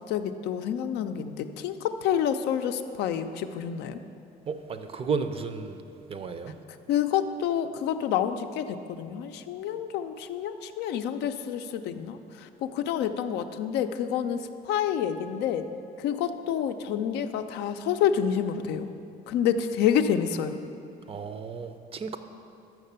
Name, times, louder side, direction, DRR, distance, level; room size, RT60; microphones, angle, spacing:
voice 1, 0.1-4.0 6.9-15.7 16.0-18.9 19.3-20.6, left 9 dB, 85° left, 8 dB, 0.5 m, -28 dB
voice 2, 4.5-5.8 6.1-6.5 21.1-22.2, right 5 dB, 35° right, 9 dB, 0.5 m, -33 dB
6.5 x 5.9 x 6.7 m, 2.6 s
cardioid pair, 110°, 17 cm